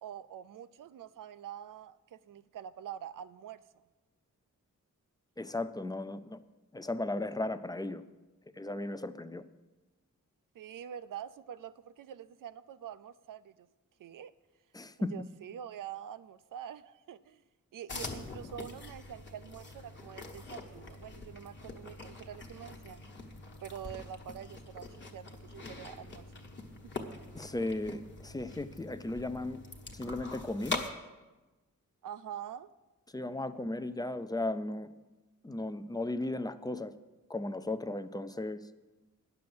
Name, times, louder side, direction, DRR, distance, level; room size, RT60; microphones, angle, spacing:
voice 1, 0.0-3.6 10.5-13.7 14.0-14.3 15.0-17.4 17.7-23.0 23.6-26.5 32.0-32.7, right 9 dB, 85° right, 15 dB, 0.5 m, -45 dB
voice 2, 5.4-6.4 6.7-8.0 8.5-9.4 14.7-15.3 27.3-29.6 29.9-30.9 33.1-34.9 35.4-36.9 37.3-38.7, left 2 dB, 15° left, 12 dB, 0.4 m, -36 dB
sound 1, 17.9-30.9, left 3 dB, 35° left, 1.2 m, -44 dB
10.0 x 6.9 x 7.8 m, 1.2 s
wide cardioid pair, 150°, 31 cm